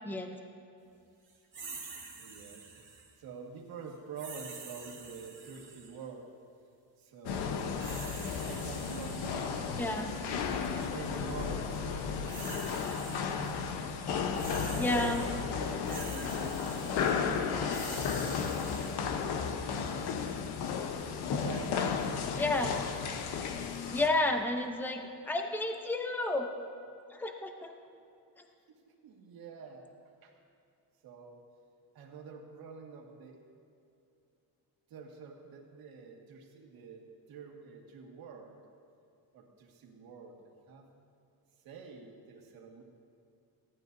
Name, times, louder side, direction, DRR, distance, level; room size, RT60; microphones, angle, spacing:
voice 1, 0.0-0.4 9.8-10.1 14.8-15.2 22.4-22.7 23.9-26.5 27.1-27.7 28.4-28.5, left 2 dB, 5° left, 4 dB, 0.6 m, -31 dB
sound 1, 1.5-3.1 4.2-6.0 7.5-9.9 10.6-10.9 11.9-13.5 13.8-18.9, right 4 dB, 30° right, 2.1 m, -47 dB
voice 2, 2.1-2.8 3.2-6.3 7.0-8.1 8.4-10.4 10.9-12.3 14.6-17.1 17.4-19.4 21.3-22.0 28.7-29.9 30.2-30.3 31.0-31.4 31.9-33.4 34.9-38.6 39.3-40.9 41.6-42.8, right 5 dB, 65° right, 0 dB, 1.9 m, -47 dB
sound 2, 7.2-24.1, left 6 dB, 80° left, 1.0 m, -34 dB
17.0 x 12.0 x 2.7 m, 2.5 s
cardioid pair, 145°, 38 cm